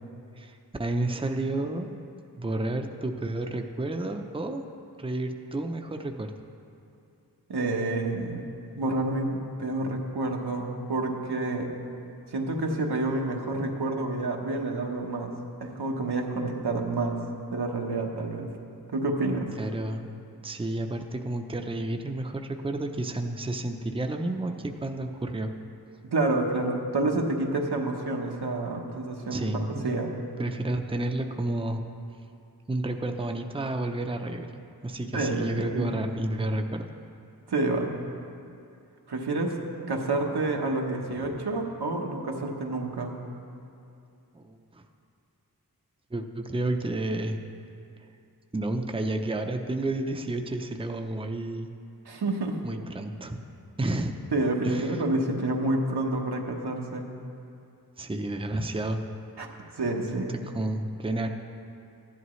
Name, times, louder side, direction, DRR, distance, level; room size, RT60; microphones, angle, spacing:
voice 1, 0.4-1.9 2.4-4.6 5.0-6.3 19.6-20.1 20.4-25.5 29.3-30.0 30.4-31.8 32.7-36.8 41.2-41.3 44.3-44.8 46.1-47.4 48.5-51.7 52.6-53.4 53.8-54.1 54.6-54.9 58.0-59.0 60.0-61.3, right 2 dB, 15° right, 4 dB, 0.6 m, -31 dB
voice 2, 7.5-8.4 8.8-11.7 12.3-15.3 15.6-17.2 17.5-18.5 18.9-19.5 26.1-30.2 35.1-35.9 37.5-37.9 39.1-39.5 39.9-43.2 52.0-52.6 54.3-57.1 59.4-59.5 59.8-60.3, right 2 dB, 85° right, 0 dB, 1.2 m, -28 dB
15.0 x 11.0 x 3.2 m, 2.6 s
wide cardioid pair, 55°, 38 cm